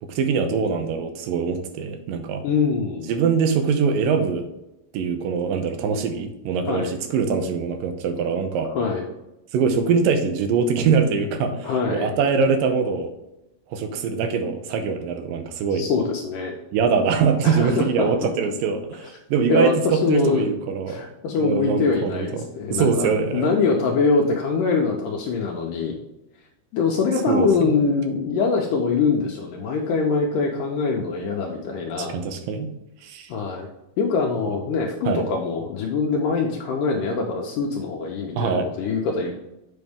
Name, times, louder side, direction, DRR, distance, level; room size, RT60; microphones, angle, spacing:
voice 1, 0.0-2.5 3.1-4.5 4.9-8.7 9.5-13.1 13.7-15.9 16.7-21.0 21.4-23.5 27.3-27.8 32.0-32.7 33.0-33.3 35.1-35.3 38.4-38.7, right 5 dB, 75° right, 6 dB, 2.3 m, -23 dB
voice 2, 2.4-3.1 6.7-6.9 8.7-9.1 11.6-12.1 15.7-16.5 17.4-18.1 19.0-19.1 19.5-20.5 20.9-26.0 26.7-32.2 33.3-33.7 34.0-39.3, left 4 dB, 75° left, 0 dB, 2.1 m, -23 dB
7.8 x 5.3 x 3.5 m, 0.92 s
omnidirectional pair, 4.3 m